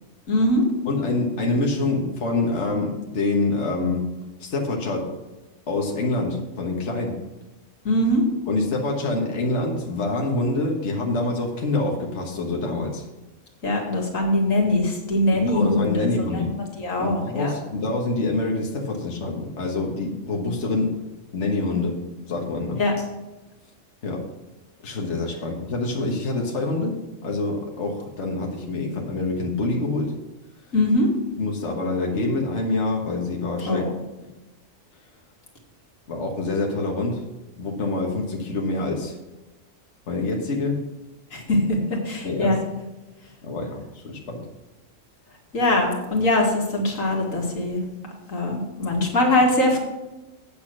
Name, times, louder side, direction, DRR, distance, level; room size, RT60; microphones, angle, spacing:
voice 1, 0.3-0.6 7.8-8.2 13.6-16.1 16.3-17.5 22.8-22.9 30.7-31.1 33.7-33.9 41.3-41.8 42.0-42.6 45.5-47.8 48.3-49.8, left 1 dB, 90° left, 0 dB, 2.4 m, -22 dB
voice 2, 0.8-4.1 4.4-5.2 5.7-7.2 8.5-13.0 15.3-16.6 17.0-21.0 21.3-22.8 24.0-24.3 24.8-30.1 31.4-33.9 36.1-37.2 37.6-39.2 40.1-40.9 42.2-42.6 43.4-44.5, left 2 dB, 60° left, 0 dB, 1.7 m, -26 dB
8.5 x 7.1 x 6.1 m, 1.1 s
omnidirectional pair, 1.3 m